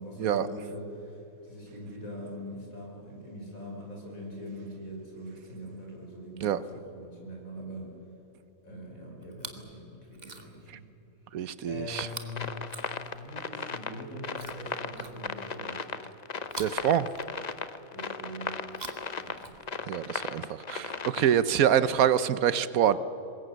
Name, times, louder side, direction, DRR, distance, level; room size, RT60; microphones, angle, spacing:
voice 1, 0.0-7.9 8.6-10.8 11.7-12.6 13.0-15.9 17.9-18.6 19.2-19.6, equal, 75° left, -1 dB, 6.5 m, -42 dB
Chewing mastication, 9.2-9.7 10.1-10.7 12.0-13.4 14.3-15.6 16.4-17.7 18.6-20.0 20.9-21.0, right 3 dB, 30° right, 1.7 m, -46 dB
voice 2, 11.3-12.1 16.6-17.1 19.9-23.0, right 9 dB, 80° right, 15 dB, 1.2 m, -25 dB
sound 1, 11.9-21.6, left 5 dB, 35° left, 0.8 m, -36 dB
25.0 x 21.0 x 8.0 m, 3.0 s
omnidirectional pair, 1.5 m